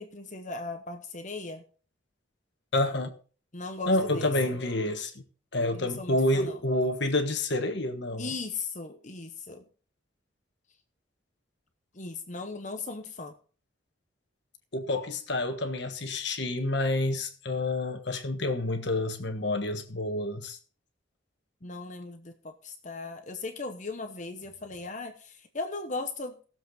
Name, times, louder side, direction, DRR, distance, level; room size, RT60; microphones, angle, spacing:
voice 1, 0.0-1.6 3.5-4.3 5.7-6.6 8.2-9.6 11.9-13.4 21.6-26.4, left 3 dB, 35° left, 1.0 m, -38 dB
voice 2, 2.7-3.1 3.8-5.1 5.5-8.3 14.7-20.6, left 2 dB, 55° left, 1.4 m, -28 dB
18.0 x 7.5 x 4.0 m
head